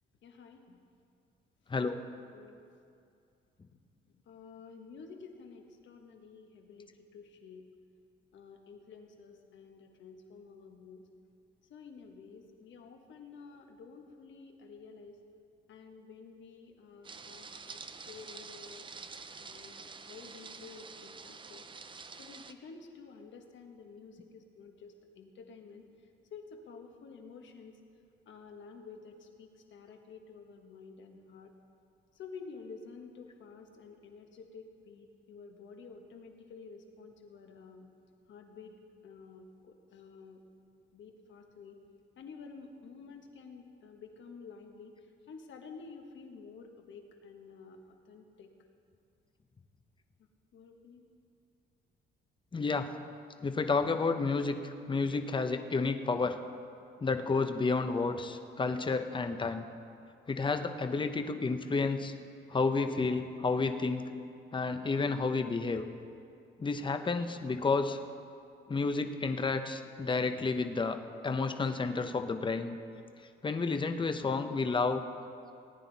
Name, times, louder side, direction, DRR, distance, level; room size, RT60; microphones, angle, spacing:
voice 1, 0.2-0.8 2.3-2.6 4.1-7.7 8.3-11.0 11.7-15.2 15.7-18.9 19.4-21.7 22.1-25.8 26.3-27.8 28.2-31.5 32.1-37.9 38.3-38.7 39.0-40.4 40.9-41.8 42.2-48.5 50.5-51.1, left 5 dB, 70° left, 3 dB, 1.4 m, -51 dB
sound 1, 17.0-22.5, right 4 dB, 25° right, 0.6 m, -47 dB
voice 2, 52.5-52.9 53.4-56.4 57.0-59.6 60.3-62.1 62.5-64.0 64.5-65.8 66.6-68.0 68.7-71.0 71.2-72.8 73.4-75.0, left 4 dB, 25° left, 7 dB, 0.8 m, -31 dB
18.5 x 9.7 x 4.1 m, 2.5 s
cardioid pair, 90°, 20 cm